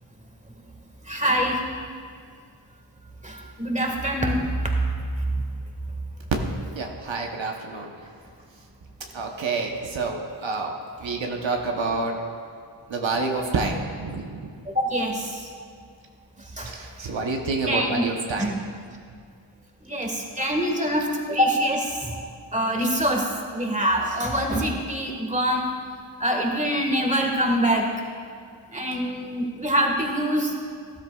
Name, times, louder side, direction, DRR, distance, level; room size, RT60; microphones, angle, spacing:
voice 1, 1.1-1.6 3.2-4.5 5.3-5.4 14.7-15.5 16.6-16.7 17.7-18.0 18.4-18.5 19.9-22.2 22.5-25.7 26.2-27.9 28.7-30.5, equal, 15° right, 1 dB, 1.7 m, -24 dB
voice 2, 6.7-7.9 9.1-10.7 11.0-12.2 12.9-14.5 16.6-18.6, right 3 dB, 80° right, 1 dB, 1.0 m, -28 dB
13.0 x 12.5 x 2.4 m, 2.2 s
cardioid pair, 50°, 45 cm